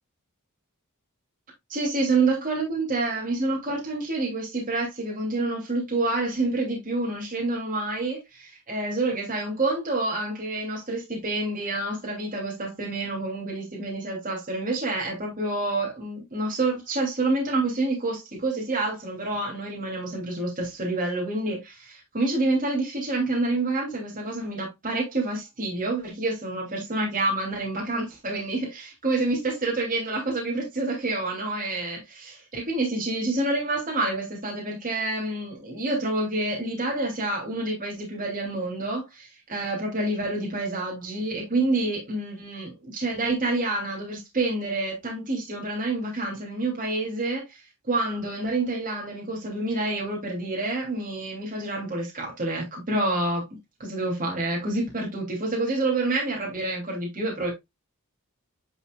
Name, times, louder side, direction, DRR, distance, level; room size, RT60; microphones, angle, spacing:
voice 1, 1.7-47.6 47.9-53.4 53.8-57.5, right 2 dB, 40° right, 2.8 m, -28 dB
10.5 x 4.6 x 2.3 m
head